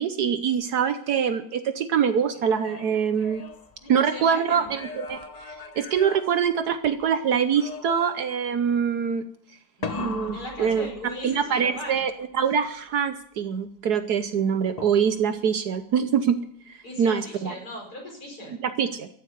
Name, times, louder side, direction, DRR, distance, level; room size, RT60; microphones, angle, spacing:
voice 1, 0.0-3.4 3.9-9.2 10.0-10.9 11.2-16.4 16.7-17.5 18.6-19.1, right 7 dB, 65° right, 10 dB, 1.3 m, -24 dB
sound 1, 2.3-4.2 4.7-7.1 7.5-8.5 9.8-11.4 14.8-15.4, left 4 dB, 30° left, 0.8 m, -39 dB
voice 2, 3.8-4.7 9.8-12.0 16.8-18.5, left 1 dB, 55° left, 0 dB, 5.2 m, -38 dB
14.0 x 7.9 x 9.4 m, 0.66 s
omnidirectional pair, 1.9 m